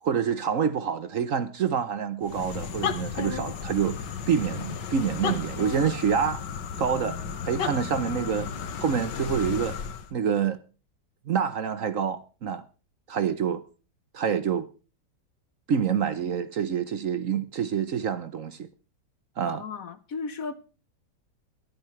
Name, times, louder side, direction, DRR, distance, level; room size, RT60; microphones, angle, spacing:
voice 1, 0.0-6.4 6.8-7.2 7.4-8.5 8.8-9.8 10.1-10.6 11.3-12.6 13.1-13.6 14.1-14.7 15.7-18.7 19.4-19.6, right 7 dB, 55° right, 1.1 m, -27 dB
sound 1, 2.2-10.1, left 7 dB, 85° left, 1.9 m, -33 dB
voice 2, 19.5-20.6, left 4 dB, 55° left, 1.3 m, -35 dB
22.5 x 9.5 x 3.2 m
omnidirectional pair, 1.9 m